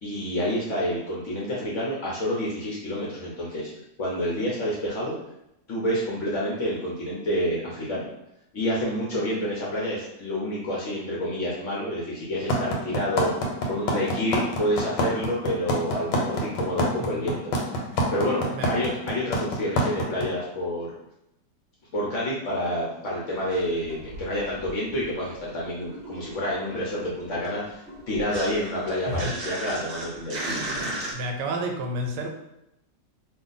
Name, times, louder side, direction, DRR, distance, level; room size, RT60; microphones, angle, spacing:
voice 1, 0.0-3.7 4.0-5.2 5.7-8.1 8.5-13.3 13.7-17.8 18.1-20.9 21.9-30.6, equal, 60° left, -5 dB, 0.9 m, -28 dB
sound 1, 12.5-20.2, equal, 90° left, 1.4 m, -24 dB
sound 2, 23.3-25.3 25.5-31.1, right 1 dB, 55° right, 0.8 m, -36 dB
voice 2, 31.1-32.3, right 1 dB, 85° right, 3 dB, 1.2 m, -30 dB
2.7 x 2.5 x 3.8 m, 0.85 s
omnidirectional pair, 1.9 m